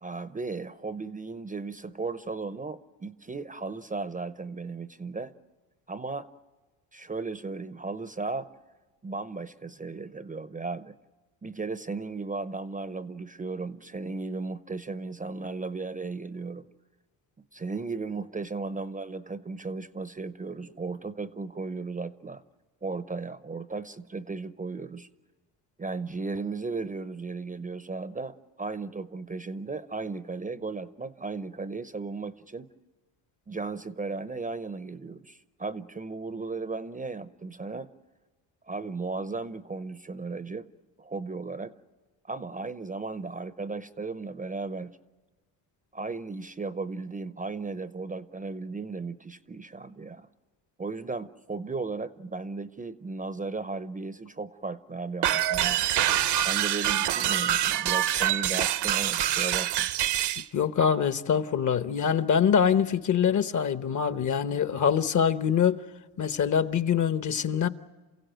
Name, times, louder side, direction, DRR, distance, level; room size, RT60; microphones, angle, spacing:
voice 1, 0.0-5.3 5.9-6.3 6.9-8.5 9.0-10.9 11.4-16.6 17.5-22.4 22.8-25.1 25.8-32.7 33.5-37.9 38.7-40.7 41.0-41.7 42.2-44.9 45.9-50.3 50.8-55.8 56.4-59.9, right 3 dB, 20° right, 0.7 m, -35 dB
sound 1, 55.2-60.4, right 12 dB, 65° right, 0.9 m, -25 dB
voice 2, 60.4-65.8 66.2-67.7, left 7 dB, 40° left, 1.0 m, -24 dB
28.5 x 15.5 x 9.1 m
cardioid pair, 95°, 45 cm